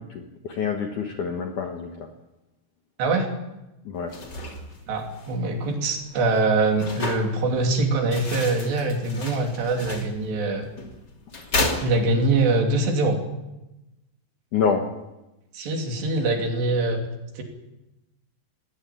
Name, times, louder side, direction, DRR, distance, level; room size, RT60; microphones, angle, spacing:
voice 1, 0.1-1.9 3.9-4.1 14.5-14.9, left 6 dB, 60° left, 3 dB, 2.1 m, -26 dB
voice 2, 3.0-3.3 4.9-10.7 11.8-13.2 15.5-17.0 17.4-17.5, right 2 dB, 65° right, 2 dB, 4.9 m, -23 dB
sound 1, 4.0-12.5, left 2 dB, 30° left, 2.6 m, -33 dB
20.0 x 18.0 x 8.8 m, 0.97 s
omnidirectional pair, 5.5 m